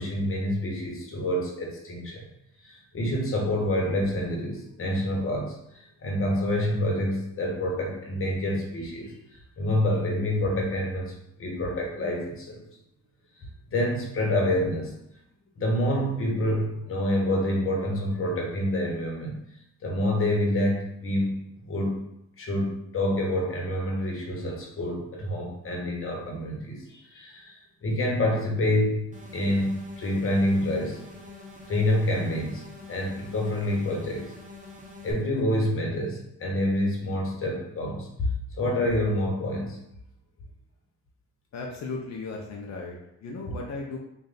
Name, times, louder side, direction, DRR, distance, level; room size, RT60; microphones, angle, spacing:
voice 1, 0.0-2.2 2.6-5.6 6.0-9.1 9.6-12.6 13.7-14.9 15.6-19.4 19.8-21.3 21.6-22.0 22.4-31.0 31.7-32.6 32.9-34.3 35.0-38.1 38.6-39.8, left 1 dB, 45° left, -1 dB, 1.2 m, -27 dB
sound 1, 29.1-35.1, left 3 dB, 25° right, 1.0 m, -45 dB
voice 2, 41.5-44.0, left 3 dB, 65° left, -1 dB, 0.7 m, -36 dB
3.2 x 2.5 x 4.0 m, 0.81 s
cardioid pair, 90°, 30 cm